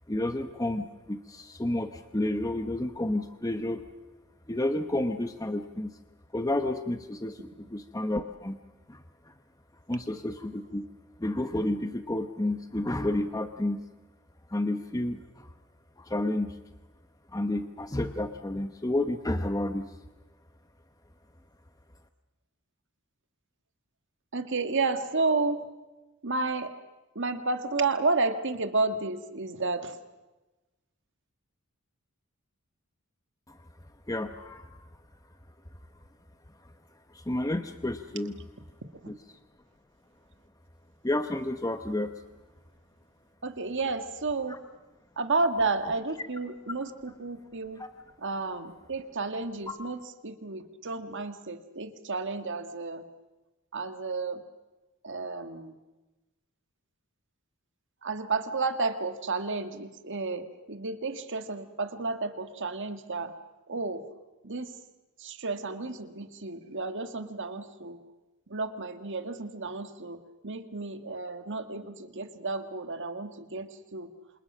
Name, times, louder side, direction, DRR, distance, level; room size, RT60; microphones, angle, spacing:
voice 1, 0.1-3.8 4.5-6.0 6.3-8.6 8.9-9.3 9.9-10.9 11.2-13.8 14.5-15.5 16.0-16.6 17.3-19.9 33.5-33.6 34.1-34.7 37.1-38.4 39.1-39.2 41.0-42.1 47.8-47.9, left 1 dB, 15° left, 7 dB, 0.9 m, -31 dB
voice 2, 24.3-25.7 26.2-26.7 27.2-30.0 43.4-44.6 45.2-47.8 48.2-53.1 53.7-54.4 55.0-55.8 58.0-63.3 63.7-64.0 64.4-64.7 65.2-68.0 68.5-74.1, right 3 dB, 60° right, 8 dB, 1.8 m, -31 dB
28.5 x 27.0 x 6.2 m, 1.1 s
head